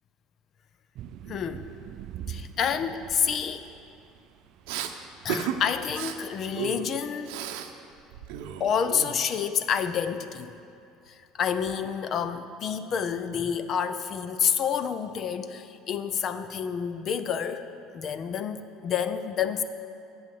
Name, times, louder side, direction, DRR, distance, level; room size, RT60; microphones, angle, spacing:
sound 1, 1.0-7.9, right 9 dB, 50° right, 0.3 m, -45 dB
voice 1, 1.3-1.7 2.3-3.7 5.2-7.5 8.6-10.6 11.1-17.6 17.9-19.6, left 7 dB, 40° left, 11 dB, 0.5 m, -29 dB
Respiratory sounds, 4.7-4.9 5.3-5.6 5.9-6.1 6.5-7.7 8.0-9.4, right 9 dB, 85° right, 0.7 m, -34 dB
9.3 x 7.8 x 7.1 m, 2.6 s
cardioid pair, 145°, 0 cm